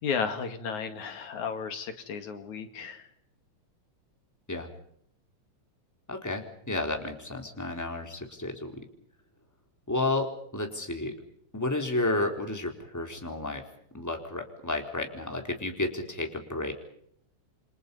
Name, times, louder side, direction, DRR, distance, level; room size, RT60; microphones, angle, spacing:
voice 1, 0.0-3.1, left 6 dB, 80° left, 7 dB, 3.5 m, -33 dB
voice 2, 6.1-8.8 9.9-11.1 11.5-13.6 13.9-16.7, left 2 dB, 5° left, 3 dB, 3.7 m, -31 dB
29.0 x 25.5 x 5.5 m, 0.69 s
omnidirectional pair, 3.3 m